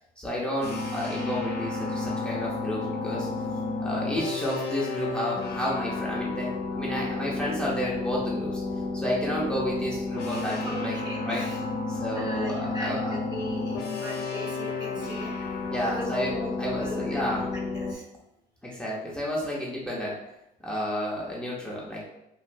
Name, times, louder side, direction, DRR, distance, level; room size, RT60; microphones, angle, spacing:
voice 1, 0.2-3.3 3.8-8.6 8.9-11.0 11.2-11.5 11.9-13.2 15.7-17.5 18.6-20.2 20.6-22.1, equal, 5° left, -6 dB, 0.7 m, -31 dB
sound 1, 0.6-17.9, left 3 dB, 70° left, 0.6 m, -32 dB
voice 2, 10.3-11.6 12.1-15.5 15.8-16.5 16.8-18.0, left 1 dB, 25° right, -2 dB, 0.8 m, -38 dB
3.0 x 2.6 x 2.6 m, 0.85 s
cardioid pair, 110°, 17 cm